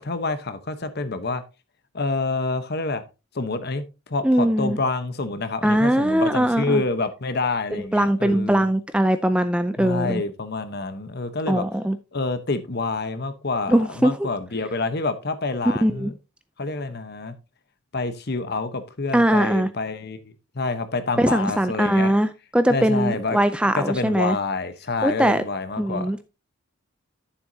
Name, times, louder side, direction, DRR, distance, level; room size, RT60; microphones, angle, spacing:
voice 1, 0.0-1.4 1.9-3.0 3.3-8.6 9.8-11.6 12.1-16.1 16.6-17.3 17.9-22.1 22.7-23.4 23.7-26.1, left 3 dB, 50° left, 1.0 m, -27 dB
voice 2, 4.2-4.8 5.6-6.8 7.7-10.2 11.5-12.0 13.7-14.3 15.6-16.1 19.1-19.7 21.2-24.4 25.0-25.4 25.8-26.2, right 1 dB, 5° right, 0.3 m, -21 dB
12.0 x 7.1 x 2.7 m
head